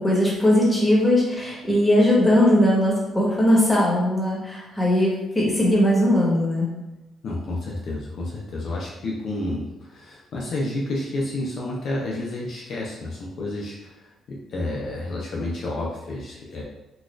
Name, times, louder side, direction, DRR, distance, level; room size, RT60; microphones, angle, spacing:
voice 1, 0.0-6.7, left 1 dB, 15° left, -5 dB, 1.3 m, -19 dB
voice 2, 7.2-16.6, left 2 dB, 65° left, -3 dB, 0.6 m, -30 dB
4.0 x 2.4 x 2.4 m, 1.0 s
cardioid pair, 90°, 0 cm